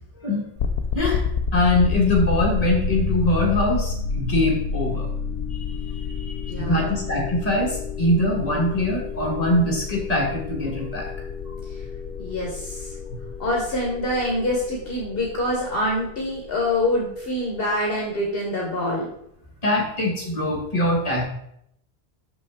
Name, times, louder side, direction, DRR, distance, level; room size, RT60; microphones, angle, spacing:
sound 1, 0.6-17.5, left 5 dB, 90° left, 0.9 m, -29 dB
voice 1, 0.9-1.2 1.5-5.1 6.6-11.1 13.1-13.2 19.6-21.3, left 1 dB, 35° left, -1 dB, 1.8 m, -22 dB
voice 2, 6.5-7.1 11.7-11.8 12.2-13.0 13.4-19.1, left 1 dB, 60° left, -1 dB, 1.3 m, -26 dB
6.1 x 6.1 x 3.5 m, 0.74 s
omnidirectional pair, 1.1 m